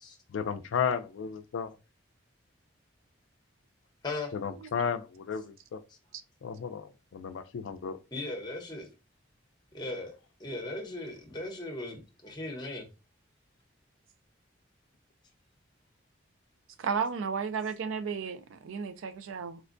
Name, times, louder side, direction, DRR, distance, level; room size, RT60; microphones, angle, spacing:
voice 1, 0.3-1.7 4.4-5.8 6.4-8.0, left 7 dB, 75° left, 0.3 m, -33 dB
voice 2, 8.1-8.9 9.7-10.1 10.4-12.9, left 2 dB, 20° left, 0.8 m, -37 dB
voice 3, 16.8-19.6, right 6 dB, 80° right, 0.4 m, -33 dB
4.3 x 2.2 x 2.5 m
head